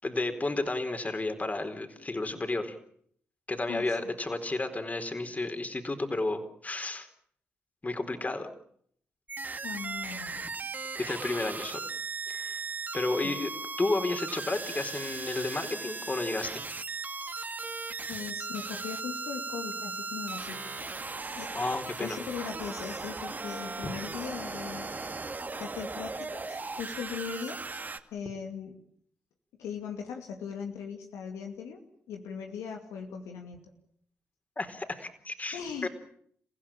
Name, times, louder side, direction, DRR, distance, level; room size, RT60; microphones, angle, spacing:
voice 1, 0.0-2.7 3.5-7.1 7.8-8.5 11.0-11.8 12.3-12.6 12.9-13.5 13.8-16.6 21.5-22.2 34.6-35.9, left 2 dB, 30° left, 7 dB, 4.3 m, -32 dB
sound 1, 9.3-28.0, right 3 dB, 35° right, 2.2 m, -37 dB
voice 2, 9.6-10.4 13.2-13.4 18.1-20.6 21.4-21.6 22.0-24.9 25.6-27.6 28.1-28.8 29.6-31.8 32.1-33.6 35.5-35.9, left 7 dB, 85° left, 3 dB, 2.3 m, -39 dB
30.0 x 16.0 x 8.9 m, 0.65 s
supercardioid pair, 45°, 5 cm